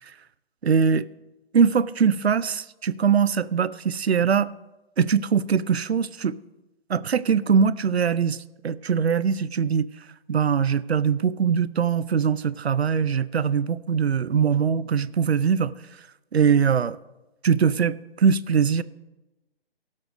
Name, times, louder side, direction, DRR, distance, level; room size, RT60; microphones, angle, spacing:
voice 1, 0.6-1.0 1.5-4.5 5.0-6.4 6.9-9.9 10.3-15.7 16.3-17.0 17.4-18.8, right 6 dB, 90° right, 18 dB, 0.5 m, -22 dB
16.5 x 6.5 x 5.2 m, 1.0 s
figure-of-eight pair, 135°, 31 cm